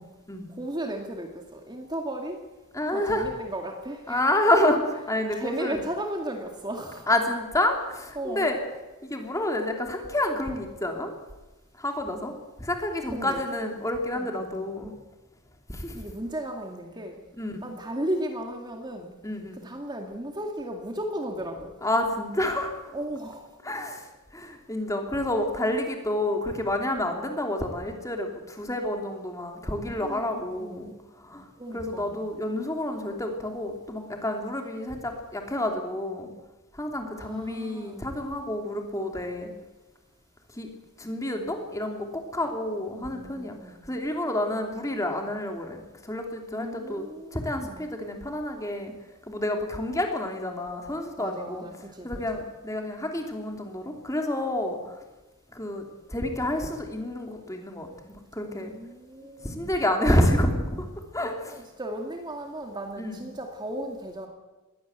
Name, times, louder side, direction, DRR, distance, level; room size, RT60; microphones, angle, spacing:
voice 1, 0.5-2.4 2.9-4.2 5.3-7.1 8.2-8.5 13.1-13.4 14.1-14.7 15.9-17.2 17.6-19.1 19.6-21.7 22.9-23.6 30.0-30.9 31.3-32.2 37.2-38.1 42.9-43.8 46.5-47.9 51.2-52.4 58.5-59.7 61.5-64.3, right 1 dB, 20° right, 3 dB, 2.1 m, -35 dB
voice 2, 2.7-3.3 4.1-5.8 7.1-8.6 9.0-11.1 11.8-12.3 12.6-14.9 15.7-15.9 17.4-17.7 19.2-19.6 21.8-22.9 23.6-24.1 24.3-30.9 31.2-31.5 31.7-36.3 36.8-39.5 40.6-40.7 41.0-43.5 43.9-47.0 47.3-48.9 49.3-51.6 52.0-54.9 55.5-58.7 59.4-60.6 61.1-61.6 63.0-63.2, left 1 dB, 15° left, 3 dB, 3.0 m, -29 dB
21.5 x 17.0 x 8.2 m, 1.1 s
head